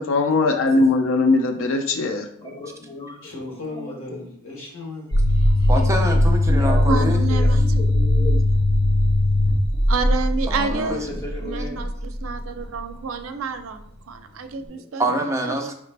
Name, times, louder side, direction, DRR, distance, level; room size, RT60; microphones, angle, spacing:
voice 1, 0.0-2.3, left 3 dB, 65° left, 5 dB, 0.4 m, -20 dB
voice 2, 2.4-3.3 4.1-4.3 6.5-8.4 10.7-11.8 14.7-14.8, left 2 dB, 15° left, -3 dB, 1.1 m, -34 dB
voice 3, 3.2-5.8, left 2 dB, 85° left, -1 dB, 1.5 m, -37 dB
sound 1, 5.1-12.8, left 1 dB, 50° left, 0.9 m, -19 dB
voice 4, 5.7-7.2 10.5-11.0 15.0-15.7, right 1 dB, 15° right, 3 dB, 0.5 m, -25 dB
voice 5, 6.9-7.8 8.2-8.4 9.9-11.1 11.4-15.1 15.5-15.7, right 4 dB, 80° right, 8 dB, 0.5 m, -29 dB
4.9 x 3.2 x 3.3 m, 0.69 s
head